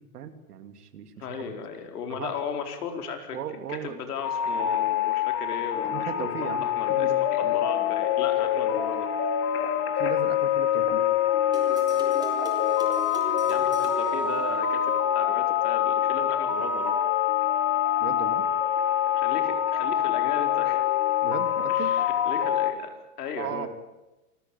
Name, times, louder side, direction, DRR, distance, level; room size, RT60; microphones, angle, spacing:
voice 1, 0.1-1.5 2.1-2.4 3.3-4.0 5.8-7.5 10.0-11.0 18.0-18.4 21.2-21.9 23.4-23.7, right 9 dB, 85° right, 8 dB, 2.9 m, -37 dB
voice 2, 1.2-3.4 3.7-9.1 13.5-17.0 19.1-20.9 21.7-22.9 23.2-23.7, left 6 dB, 80° left, 5 dB, 4.6 m, -36 dB
sound 1, 4.2-22.7, left 10 dB, 30° left, 3.6 m, -25 dB
sound 2, 11.5-15.0, right 3 dB, 10° right, 5.0 m, -40 dB
27.0 x 15.5 x 9.2 m, 1.0 s
hypercardioid pair, 130°, 45 cm